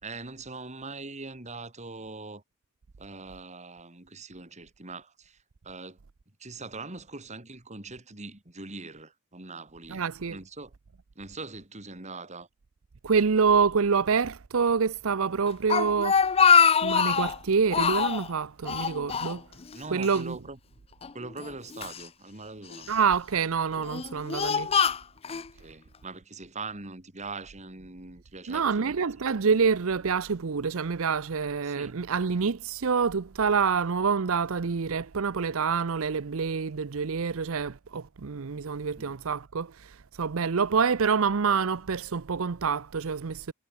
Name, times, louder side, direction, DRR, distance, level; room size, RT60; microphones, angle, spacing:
voice 1, 0.0-2.4 3.0-5.4 5.6-6.0 6.4-10.0 10.3-10.7 11.2-12.5 19.7-20.6 21.1-22.9 25.3-29.0 31.6-31.9 39.0-39.2, right 3 dB, 30° right, 2.8 m, -42 dB
voice 2, 9.9-10.4 13.0-16.4 16.8-19.4 19.9-20.4 22.9-24.7 28.5-43.5, right 5 dB, 65° right, 0.6 m, -27 dB
Speech, 15.5-17.4 17.7-18.3 18.7-19.8 20.0-20.2 21.0-22.0 22.7-23.1 23.8-25.5, left 6 dB, 25° left, 0.5 m, -24 dB
head